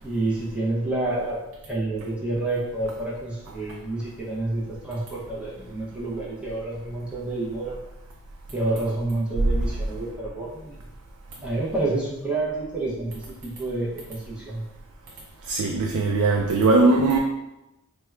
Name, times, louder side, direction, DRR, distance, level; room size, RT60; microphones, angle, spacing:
voice 1, 0.0-1.4 1.7-7.8 8.5-10.8 11.4-14.6, right 2 dB, 5° right, -8 dB, 0.6 m, -29 dB
voice 2, 15.5-17.2, right 3 dB, 80° right, 1 dB, 0.3 m, -20 dB
4.3 x 2.1 x 2.3 m, 0.94 s
head